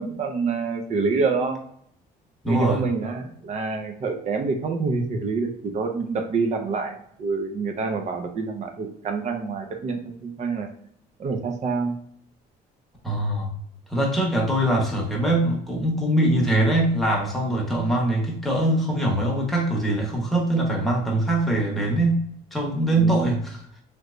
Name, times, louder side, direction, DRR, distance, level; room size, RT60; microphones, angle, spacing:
voice 1, 0.0-1.6 2.5-6.9 7.2-10.7 11.2-11.9 22.9-23.3, right 4 dB, 45° right, 4 dB, 0.6 m, -27 dB
voice 2, 2.4-2.8 13.0-13.5 13.9-22.3 22.5-23.6, right 1 dB, ahead, -2 dB, 1.0 m, -22 dB
3.3 x 3.1 x 2.5 m, 0.68 s
cardioid pair, 110°, 17 cm